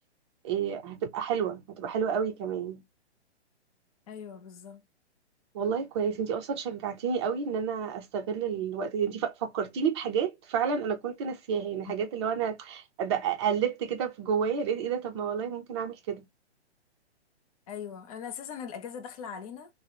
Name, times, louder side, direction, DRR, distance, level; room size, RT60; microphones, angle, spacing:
voice 1, 0.4-2.8 5.5-16.2, right 7 dB, 25° right, 0.5 m, -30 dB
voice 2, 4.1-4.8 17.7-19.7, left 7 dB, 35° left, 0.4 m, -40 dB
2.8 x 2.0 x 2.2 m
hypercardioid pair, 130°, 34 cm